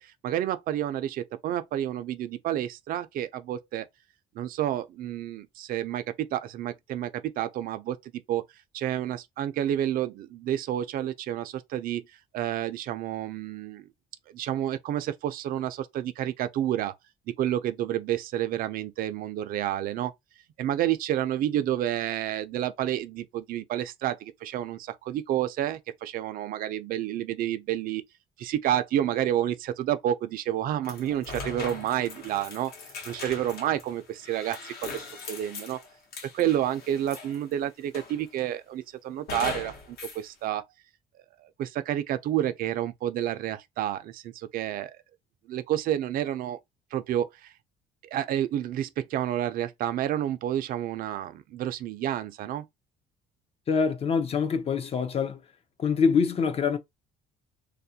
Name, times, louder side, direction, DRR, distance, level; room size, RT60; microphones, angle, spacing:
voice 1, 0.0-3.9 4.3-8.4 8.7-12.0 12.3-13.9 14.3-16.9 17.4-20.1 20.6-28.0 28.4-32.7 33.0-35.8 36.3-40.6 41.4-45.0 45.5-46.6 46.9-47.5 48.0-52.7, right 11 dB, 60° right, 0.4 m, -30 dB
sound 1, 30.8-37.5 37.9-38.5 39.3-40.2, left 4 dB, 70° left, 0.9 m, -40 dB
voice 2, 53.7-55.4 55.8-56.8, left 6 dB, 35° left, 0.5 m, -25 dB
2.3 x 2.1 x 2.7 m
cardioid pair, 110°, 17 cm